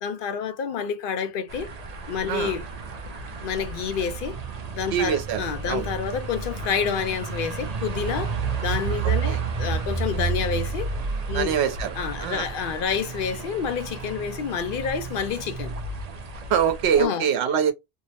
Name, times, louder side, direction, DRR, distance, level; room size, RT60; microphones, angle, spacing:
voice 1, 0.0-1.7 2.1-2.7 3.4-4.4 4.7-8.3 8.6-10.9 11.3-11.6 12.0-15.7 17.0-17.3, left 7 dB, 60° left, 0.6 m, -28 dB
sound 1, 1.5-17.0, right 5 dB, 50° right, 0.5 m, -31 dB
voice 2, 4.9-5.9 9.3-9.4 11.3-11.9 12.2-12.5 16.5-17.7, right 8 dB, 70° right, 0.9 m, -24 dB
2.8 x 2.0 x 2.7 m
omnidirectional pair, 1.2 m